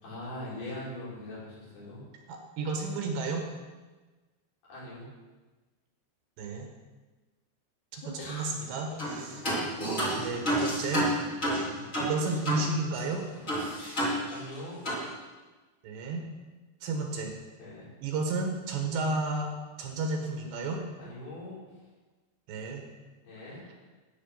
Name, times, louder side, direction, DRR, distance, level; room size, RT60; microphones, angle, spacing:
voice 1, 0.0-2.0 4.7-5.1 8.0-8.5 9.2-9.7 11.5-11.8 14.3-14.8 17.6-17.9 21.0-21.6 23.2-23.7, left 1 dB, 55° left, -8 dB, 6.7 m, -42 dB
voice 2, 2.3-3.5 6.4-6.7 7.9-8.0 8.3-9.4 10.2-11.1 12.0-13.3 15.8-16.3 16.8-17.3 18.0-19.5 19.8-20.8 22.5-22.8, right 3 dB, 75° right, 2 dB, 3.9 m, -32 dB
sound 1, 9.0-9.2 9.4-12.7 12.9-13.0 13.5-14.6 14.8-15.0, right 1 dB, 20° left, 2.8 m, -30 dB
13.5 x 9.3 x 5.9 m, 1.2 s
omnidirectional pair, 5.2 m